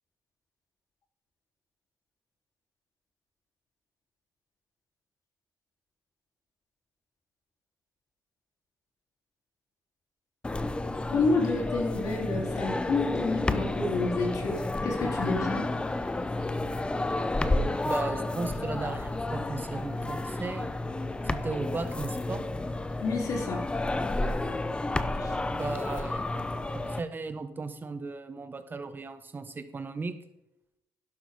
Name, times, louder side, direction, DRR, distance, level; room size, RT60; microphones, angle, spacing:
sound 1, 10.4-27.0, left 2 dB, 15° left, 0.8 m, -31 dB
voice 1, 11.1-15.7 23.0-23.7 25.2-25.4, left 3 dB, 55° left, 0 dB, 3.6 m, -29 dB
voice 2, 17.8-20.7 21.3-22.4 25.5-26.3 26.7-30.1, right 3 dB, 30° right, 9 dB, 1.5 m, -36 dB
12.0 x 11.5 x 3.8 m, 0.85 s
cardioid pair, 95°, 7 cm